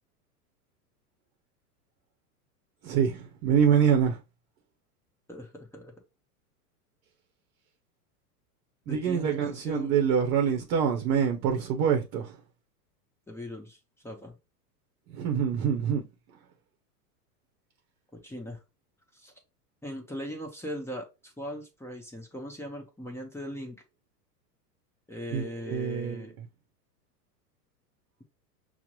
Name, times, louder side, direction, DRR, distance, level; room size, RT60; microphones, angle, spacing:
voice 1, 2.8-4.2 8.9-12.3 15.1-16.0 25.3-26.2, right 7 dB, 45° right, 0.8 m, -25 dB
voice 2, 5.3-5.9 8.9-9.9 13.3-14.3 18.1-18.6 19.1-19.3 19.8-23.8 25.1-26.3, equal, 5° left, 0.7 m, -39 dB
5.8 x 2.1 x 2.9 m
hypercardioid pair, 100°, 47 cm